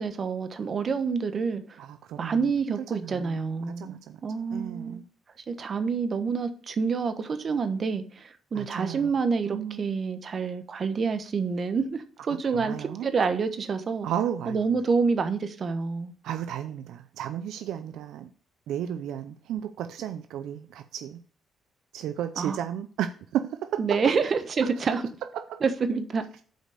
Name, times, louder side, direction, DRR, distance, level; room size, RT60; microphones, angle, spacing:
voice 1, 0.0-1.8 2.2-5.0 5.5-14.1 14.5-16.1 22.4-22.6 23.8-25.0 25.6-26.2, right 5 dB, 45° right, 1.2 m, -28 dB
voice 2, 1.8-2.5 2.9-3.4 3.8-4.2 4.5-5.0 8.5-9.1 9.5-9.8 12.5-13.1 14.0-14.6 16.2-18.3 18.7-21.2 21.9-24.1 25.3-25.6, right 10 dB, 85° right, 0.5 m, -33 dB
7.6 x 5.2 x 6.6 m
cardioid pair, 90°, 0 cm